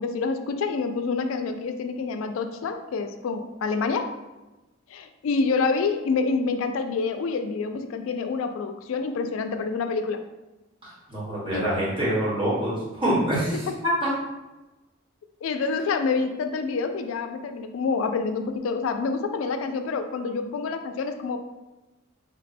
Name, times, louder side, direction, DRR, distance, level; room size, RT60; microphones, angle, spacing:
voice 1, 0.0-4.1 4.9-10.2 11.5-11.6 13.7-13.8 15.4-21.4, left 4 dB, 85° left, 7 dB, 0.3 m, -27 dB
voice 2, 10.8-13.7 14.0-14.1, right 1 dB, 25° right, -7 dB, 1.3 m, -26 dB
3.4 x 2.2 x 4.1 m, 1.1 s
head